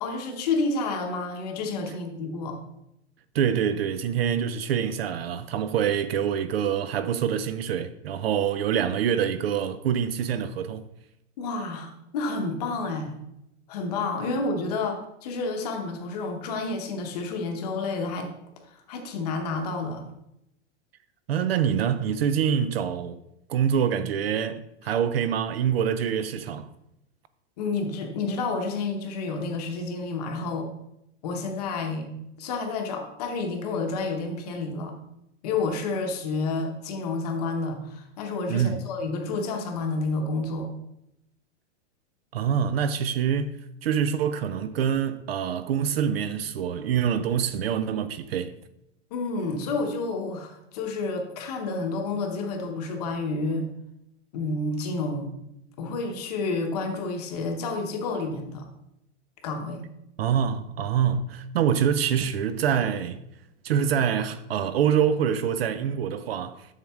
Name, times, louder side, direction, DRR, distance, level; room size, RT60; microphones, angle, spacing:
voice 1, 0.0-2.6 11.4-13.2 13.7-18.3 18.7-20.0 27.6-30.7 31.2-32.1 32.4-34.9 35.4-40.7 49.1-53.7 54.3-55.3 55.8-58.6 59.4-59.8, left 3 dB, 35° left, 0.9 m, -30 dB
voice 2, 3.3-10.9 21.3-23.2 23.5-26.7 38.5-38.8 42.3-43.6 43.8-48.6 60.2-63.2 63.6-66.7, right 8 dB, 55° right, 0.5 m, -25 dB
7.4 x 6.4 x 3.5 m
supercardioid pair, 180°, 36 cm